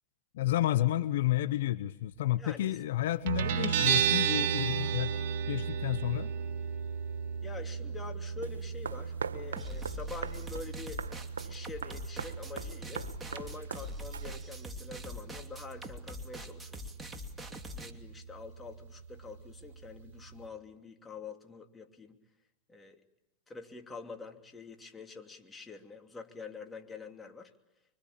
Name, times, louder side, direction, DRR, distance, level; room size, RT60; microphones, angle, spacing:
voice 1, 0.3-5.1 5.5-6.3, left 14 dB, 70° left, 14 dB, 0.9 m, -30 dB
voice 2, 2.4-2.8 7.4-11.0 11.4-16.9 17.8-22.2 22.7-23.0 23.5-27.5, left 4 dB, 15° left, 4 dB, 2.8 m, -46 dB
Guitar, 3.3-20.5, right 8 dB, 60° right, 3.2 m, -35 dB
sound 1, 8.4-14.7, right 6 dB, 85° right, 1.7 m, -42 dB
sound 2, 9.6-17.9, left 1 dB, 10° right, 2.7 m, -44 dB
25.5 x 24.5 x 8.7 m, 0.93 s
hypercardioid pair, 105°, 0 cm